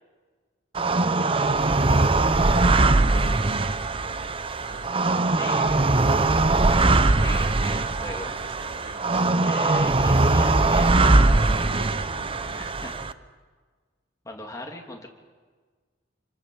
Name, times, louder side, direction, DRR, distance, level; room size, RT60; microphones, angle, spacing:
sound 1, 0.7-13.1, right 2 dB, 30° right, 0.8 m, -21 dB
voice 1, 4.6-5.6 7.4-9.3 11.5-12.8, right 1 dB, 70° right, 2 dB, 6.5 m, -46 dB
voice 2, 5.4-5.8 6.3-6.4 6.7-8.3 9.4-11.1 12.5-12.9 14.2-15.1, left 2 dB, 20° left, 1 dB, 3.1 m, -38 dB
27.0 x 23.5 x 7.3 m, 1.5 s
head